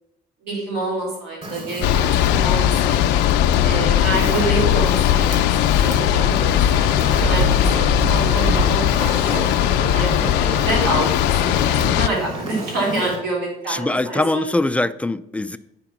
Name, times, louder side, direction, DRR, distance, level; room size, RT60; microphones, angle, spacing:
voice 1, 0.4-3.2 3.6-6.9 7.2-9.4 9.9-14.4, right 2 dB, 80° right, -3 dB, 3.6 m, -27 dB
Fire, 1.4-13.2, right 2 dB, 40° right, 2.7 m, -32 dB
sound 1, 1.8-12.1, left 11 dB, 90° left, 0.5 m, -18 dB
sound 2, 4.4-4.5 6.4-8.8 9.3-9.4 10.1-10.2, right 1 dB, 60° right, 0.8 m, -25 dB
voice 2, 13.7-15.6, left 2 dB, 10° left, 12 dB, 0.3 m, -23 dB
8.8 x 5.1 x 5.9 m, 0.85 s
cardioid pair, 110°, 17 cm